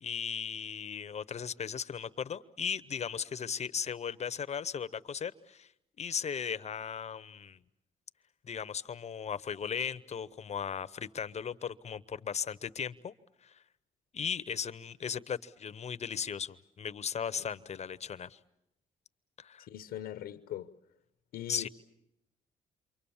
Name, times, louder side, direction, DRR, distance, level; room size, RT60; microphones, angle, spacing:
voice 1, 0.0-5.7 6.0-7.6 8.4-13.1 13.4-13.5 14.1-18.4 19.4-19.7 21.5-21.7, left 7 dB, 45° left, 0.9 m, -37 dB
voice 2, 19.6-20.7 21.3-21.7, left 11 dB, 80° left, 0.9 m, -41 dB
28.5 x 24.5 x 7.2 m
cardioid pair, 80°, 16 cm